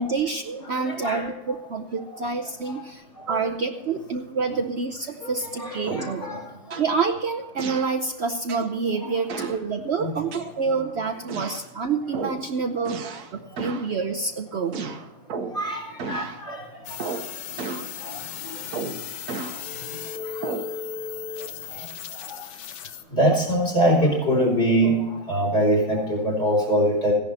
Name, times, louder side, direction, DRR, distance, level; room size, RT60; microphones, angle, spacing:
voice 1, 0.0-6.3 6.8-13.0 13.3-14.9, right 4 dB, 55° right, 5 dB, 0.9 m, -27 dB
voice 2, 0.7-1.3 3.3-3.5 5.2-6.4 9.0-9.4 10.0-10.1 12.8-12.9 15.5-16.6 18.0-18.1 22.3-22.4 23.1-25.0 25.3-27.1, right 1 dB, 45° left, -2 dB, 4.8 m, -23 dB
sound 1, 5.9-6.2 6.7-7.0 7.6-8.0 8.5-8.8 9.3-9.6 10.3-10.9 11.3-11.7 12.1-12.4 12.9-13.3 13.6-13.9 14.7-15.7 16.0-16.4 17.0-17.3 17.6-17.9 18.7-19.6 20.4-20.7, right 4 dB, 80° right, 1.6 m, -33 dB
sound 2, 16.8-23.0, left 8 dB, 90° left, 1.3 m, -36 dB
15.5 x 11.0 x 4.2 m, 1.0 s
omnidirectional pair, 1.6 m